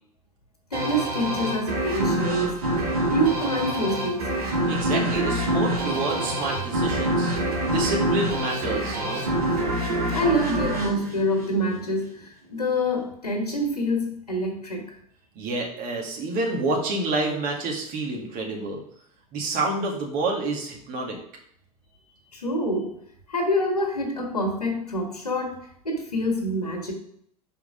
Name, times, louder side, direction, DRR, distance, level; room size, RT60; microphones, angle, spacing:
voice 1, 0.7-4.3 10.1-14.9 22.3-23.0 23.3-26.9, equal, 85° left, 2 dB, 1.6 m, -26 dB
sound 1, 0.7-12.0, right 1 dB, 70° right, 2.1 m, -26 dB
voice 2, 4.7-9.2 15.4-18.8 19.3-21.2, right 2 dB, 45° right, 0 dB, 2.0 m, -28 dB
5.8 x 4.6 x 5.0 m, 0.66 s
figure-of-eight pair, 85°, 19 cm